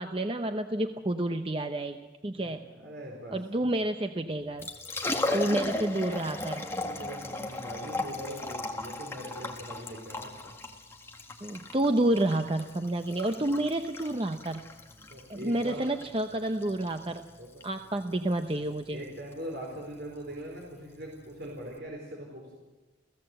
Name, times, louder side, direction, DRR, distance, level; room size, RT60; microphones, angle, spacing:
voice 1, 0.0-2.6 3.3-4.7 5.3-6.6 11.4-14.6 15.3-17.3 17.6-19.0, right 1 dB, 30° right, 7 dB, 0.8 m, -29 dB
voice 2, 2.4-3.7 5.0-5.9 6.6-10.5 13.4-13.5 14.9-16.0 17.4-17.5 18.9-22.5, equal, 60° right, -2 dB, 4.4 m, -42 dB
Liquid, 4.4-21.8, left 2 dB, 15° left, 1.7 m, -37 dB
29.5 x 16.0 x 7.9 m, 1.2 s
head